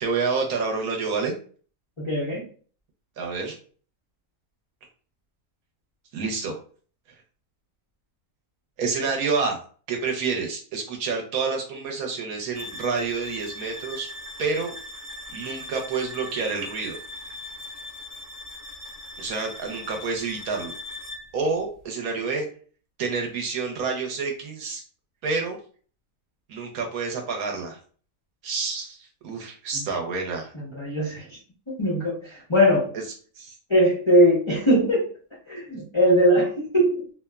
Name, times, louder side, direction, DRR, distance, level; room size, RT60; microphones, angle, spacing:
voice 1, 0.0-1.4 3.2-3.6 6.1-6.6 8.8-9.6 9.9-14.1 14.4-14.7 15.3-17.0 19.2-20.7 21.3-22.5 23.0-24.8 25.2-25.6 26.5-27.8 28.4-30.5 33.4-33.5, right 4 dB, 70° right, 1 dB, 1.0 m, -28 dB
voice 2, 2.0-2.4 29.7-29.8 30.5-31.4 31.7-32.9 33.7-35.1 35.5-37.0, equal, 45° left, -6 dB, 0.3 m, -21 dB
sound 1, 12.5-21.3, left 2 dB, 45° right, 0.7 m, -40 dB
2.9 x 2.0 x 2.2 m, 0.43 s
omnidirectional pair, 1.7 m